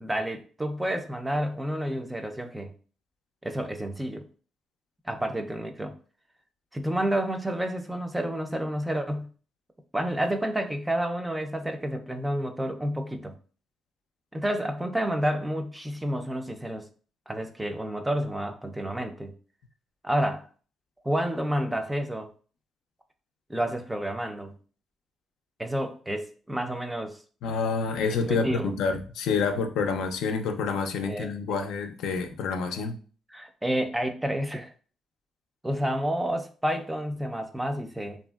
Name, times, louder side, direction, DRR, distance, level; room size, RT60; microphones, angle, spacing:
voice 1, 0.0-2.7 3.4-4.2 5.1-6.0 6.7-9.3 9.9-13.3 14.3-16.9 17.3-19.3 20.0-20.5 21.0-22.3 23.5-24.5 25.6-27.2 28.3-28.7 31.0-31.6 33.3-34.7 35.6-38.2, right 1 dB, 10° right, 0.4 m, -30 dB
voice 2, 27.4-32.9, left 5 dB, 85° left, 0.4 m, -28 dB
2.9 x 2.5 x 2.3 m
cardioid pair, 90°, 0 cm